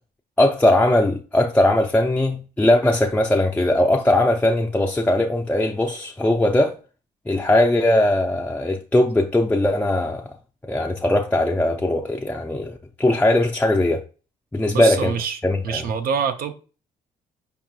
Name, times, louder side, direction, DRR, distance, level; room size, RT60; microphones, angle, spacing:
voice 1, 0.4-6.7 7.3-10.3 10.6-14.0 14.5-15.1 15.4-15.8, left 1 dB, 10° left, 0.4 m, -19 dB
voice 2, 14.7-16.5, right 6 dB, 65° right, 0.5 m, -26 dB
4.8 x 2.9 x 2.3 m
supercardioid pair, 65°, 16 cm